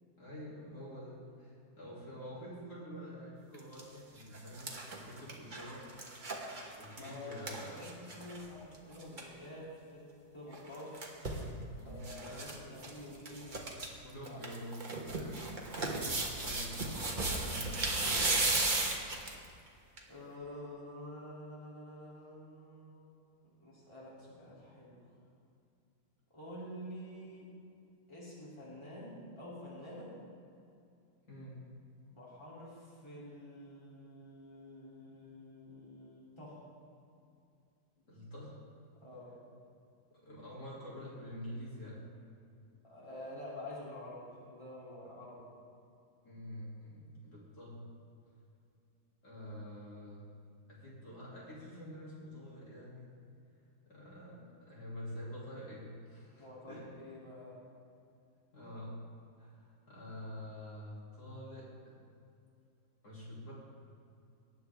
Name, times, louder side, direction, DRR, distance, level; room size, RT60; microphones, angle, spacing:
voice 1, 0.2-5.9 6.8-7.8 11.8-13.1 14.0-15.4 16.4-17.8 31.2-31.6 35.0-35.1 38.1-38.6 40.1-42.0 46.2-47.8 49.2-50.2 50.7-53.1 53.9-56.9 58.5-58.9 59.4-62.0 63.0-63.5, equal, 60° left, -7 dB, 3.3 m, -47 dB
sound 1, 3.5-3.8 4.2-8.4 8.7-8.8 9.0-9.3 10.5-11.4 12.0-12.5 12.8-12.9 13.2-13.9 14.2-19.4 20.0-20.1, right 2 dB, 30° right, 1.3 m, -35 dB
voice 2, 6.9-11.0 11.8-13.6 14.3-14.4 20.1-23.2 23.6-25.0 26.3-27.5 28.1-30.1 32.1-36.6 39.0-39.4 42.8-45.5 56.4-57.6, left 1 dB, 15° left, -7 dB, 2.9 m, -48 dB
19.0 x 9.2 x 3.5 m, 2.6 s
omnidirectional pair, 1.9 m